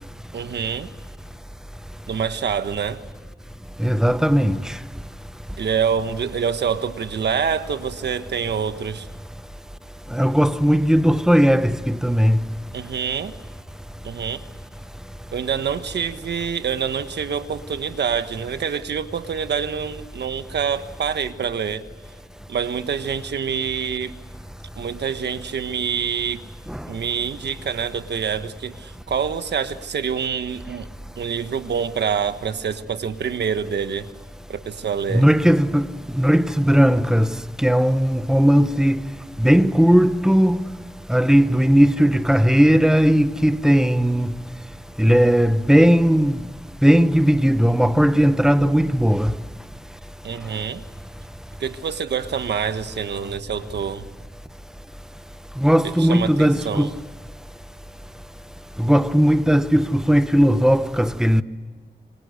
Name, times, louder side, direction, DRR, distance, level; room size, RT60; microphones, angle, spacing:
voice 1, 0.3-0.9 2.1-3.0 5.6-9.1 12.7-13.3 14.0-14.4 15.3-21.8 22.5-24.2 24.8-26.4 26.9-30.9 31.2-34.1 34.5-35.2 50.2-50.8 51.6-54.1 56.0-56.9, right 7 dB, 80° right, 1.4 m, -26 dB
voice 2, 3.8-4.7 10.1-12.4 26.7-26.8 35.1-35.9 36.1-39.1 39.4-40.7 41.1-44.3 45.0-46.4 46.8-49.3 55.6-56.9 58.8-61.4, equal, 5° right, 0.9 m, -17 dB
27.5 x 25.0 x 6.6 m
wide cardioid pair, 120°, 17 cm